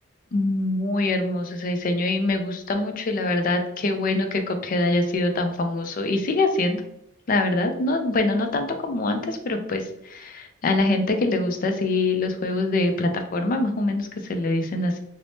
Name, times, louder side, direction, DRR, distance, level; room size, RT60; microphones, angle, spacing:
voice 1, 0.3-6.8 7.3-15.0, left 2 dB, 45° left, 6 dB, 0.4 m, -24 dB
3.3 x 2.0 x 2.6 m, 0.75 s
head